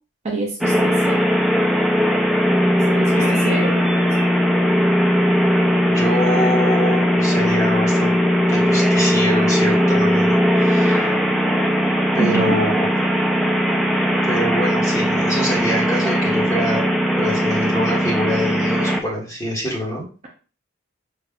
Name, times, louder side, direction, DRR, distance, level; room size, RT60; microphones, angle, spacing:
voice 1, 0.2-1.2 2.9-3.1 3.4-3.8 12.2-12.6, right 3 dB, 30° right, -1 dB, 0.7 m, -25 dB
sound 1, 0.6-19.0, equal, ahead, 0.3 m, -18 dB
voice 2, 5.8-8.1 8.5-11.1 12.1-12.9 14.2-16.9 17.1-20.0, equal, 15° left, -5 dB, 1.6 m, -25 dB
5.4 x 2.7 x 2.4 m, 0.36 s
head